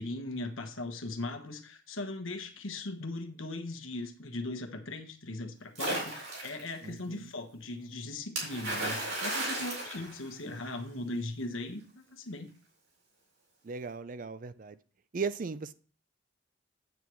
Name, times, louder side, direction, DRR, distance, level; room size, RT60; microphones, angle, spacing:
voice 1, 0.0-12.5, left 2 dB, 80° left, 6 dB, 1.3 m, -39 dB
Splash splatter, 5.7-6.7 8.4-10.8, right 2 dB, 75° right, 4.6 m, -34 dB
voice 2, 6.8-7.3 13.6-14.8 15.1-15.7, right 5 dB, 40° right, 14 dB, 0.4 m, -37 dB
9.2 x 8.5 x 3.1 m, 0.41 s
head